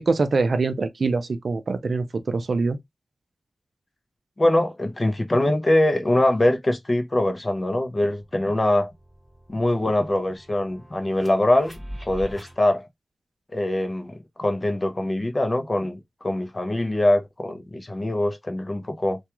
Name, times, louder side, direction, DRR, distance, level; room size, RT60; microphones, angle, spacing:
voice 1, 0.0-2.8, right 3 dB, 60° right, 0.4 m, -24 dB
voice 2, 4.4-8.9 9.5-12.9 13.5-19.2, left 1 dB, 30° left, 0.5 m, -23 dB
sound 1, 7.6-12.5, equal, 5° right, 1.1 m, -43 dB
2.3 x 2.2 x 2.9 m
wide cardioid pair, 100°, 0 cm